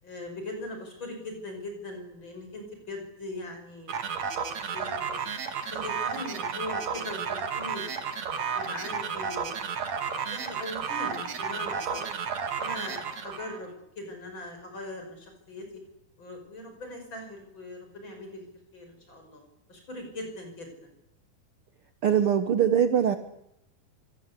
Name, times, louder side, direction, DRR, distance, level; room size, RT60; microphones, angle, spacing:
voice 1, 0.0-4.0 4.7-5.2 5.7-7.8 8.3-9.6 10.2-12.1 12.6-15.6 16.2-19.4 19.7-20.9, left 1 dB, 30° left, 4 dB, 6.7 m, -40 dB
sound 1, 3.9-13.6, right 6 dB, 50° right, 3.1 m, -32 dB
voice 2, 22.0-23.1, right 8 dB, 75° right, 9 dB, 1.2 m, -22 dB
25.5 x 23.5 x 8.4 m, 0.83 s
omnidirectional pair, 4.3 m